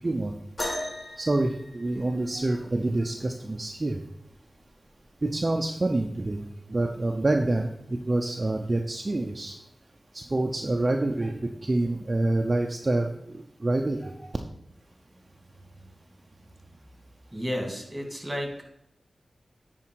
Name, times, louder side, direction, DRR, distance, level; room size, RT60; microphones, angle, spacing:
voice 1, 0.0-0.3 1.2-4.0 5.2-9.6 10.1-14.4, right 2 dB, 40° right, 3 dB, 0.6 m, -27 dB
sound 1, 0.6-2.5 4.1-4.2 5.0-5.3 6.2-6.3, left 1 dB, 55° left, 2.7 m, -36 dB
voice 2, 17.3-18.6, equal, 15° right, 2 dB, 2.3 m, -32 dB
9.8 x 4.4 x 4.6 m, 0.80 s
cardioid pair, 45°, 0 cm